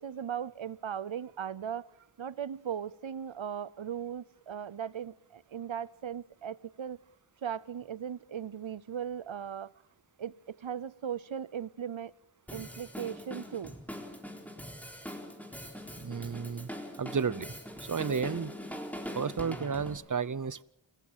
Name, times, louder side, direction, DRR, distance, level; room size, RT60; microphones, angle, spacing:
voice 1, 0.0-1.9 2.2-7.0 7.4-9.7 10.2-12.1 12.5-13.8, right 8 dB, 70° right, 0.8 m, -38 dB
Drum kit, 12.5-20.0, equal, 5° left, 4.1 m, -42 dB
voice 2, 16.0-16.7 17.0-17.5 17.8-18.5 19.1-20.6, right 6 dB, 40° right, 0.7 m, -32 dB
27.5 x 15.0 x 7.4 m
wide cardioid pair, 45°, 48 cm